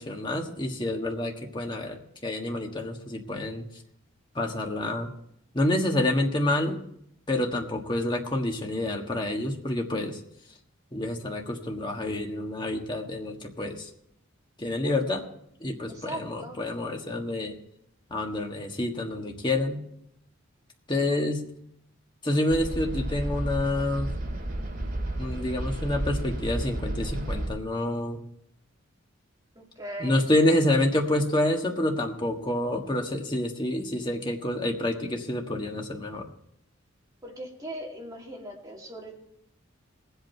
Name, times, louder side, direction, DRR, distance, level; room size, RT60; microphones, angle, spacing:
voice 1, 0.0-3.6 4.3-5.1 5.5-6.8 7.3-10.2 10.9-13.9 14.6-15.2 15.6-17.6 18.1-19.8 20.9-21.4 22.2-24.1 25.2-28.2 30.0-36.2, left 1 dB, 20° left, 2 dB, 1.5 m, -28 dB
voice 2, 15.9-16.6 29.6-30.3 37.2-39.1, right 1 dB, 20° right, -1 dB, 2.4 m, -39 dB
sound 1, 22.5-27.5, right 1 dB, 45° right, 2.6 m, -32 dB
20.5 x 8.1 x 4.5 m, 0.72 s
head